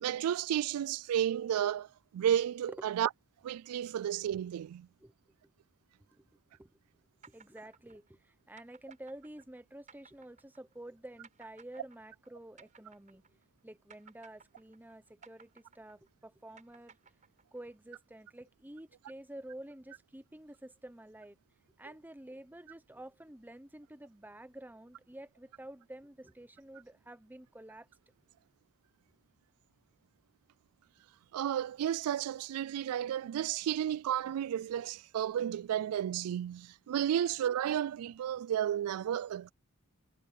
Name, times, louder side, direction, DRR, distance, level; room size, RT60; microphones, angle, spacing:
voice 1, 0.0-1.9 2.1-3.1 3.4-4.9 31.3-39.5, right 10 dB, 85° right, 0.3 m, -32 dB
sound 1, 7.2-13.6 13.9-17.7, right 5 dB, 35° right, 4.5 m, -60 dB
voice 2, 7.3-13.2 13.6-17.0 17.5-21.4 21.8-27.9, right 1 dB, 10° right, 0.9 m, -50 dB
head